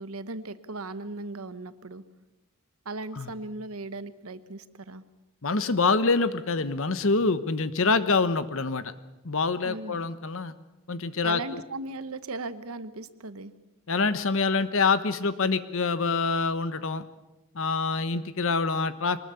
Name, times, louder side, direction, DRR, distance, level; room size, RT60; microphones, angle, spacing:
voice 1, 0.0-2.0 2.8-5.0 9.6-10.1 11.2-13.5, right 2 dB, 80° right, 13 dB, 1.1 m, -37 dB
voice 2, 5.4-8.9 9.2-10.5 10.9-11.6 13.9-17.0 17.5-19.2, left 4 dB, 65° left, 13 dB, 1.1 m, -26 dB
23.0 x 20.0 x 7.0 m, 1.0 s
head